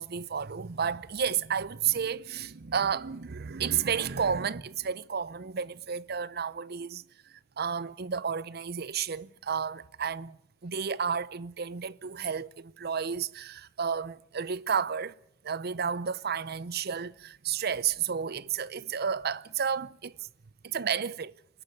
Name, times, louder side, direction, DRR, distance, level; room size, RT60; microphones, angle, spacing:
voice 1, 0.0-7.0 7.6-15.2 15.4-20.3 20.6-21.3, right 7 dB, 55° right, 0.7 m, -32 dB
27.5 x 12.0 x 8.5 m
head